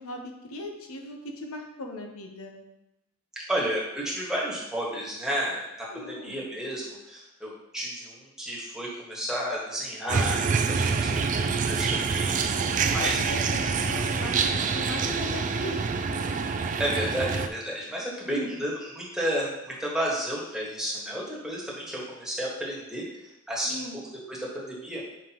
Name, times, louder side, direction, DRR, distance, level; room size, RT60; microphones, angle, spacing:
voice 1, 0.0-2.6 5.9-6.5 12.6-16.4 18.2-18.5 23.6-24.0, left 1 dB, 90° left, 3 dB, 0.8 m, -38 dB
voice 2, 3.5-11.1 11.3-12.6 12.9-13.4 16.8-23.8 24.3-25.0, equal, 5° right, -6 dB, 1.5 m, -32 dB
sound 1, 10.1-17.5, right 5 dB, 35° right, 0.3 m, -26 dB
7.3 x 5.1 x 3.0 m, 0.91 s
head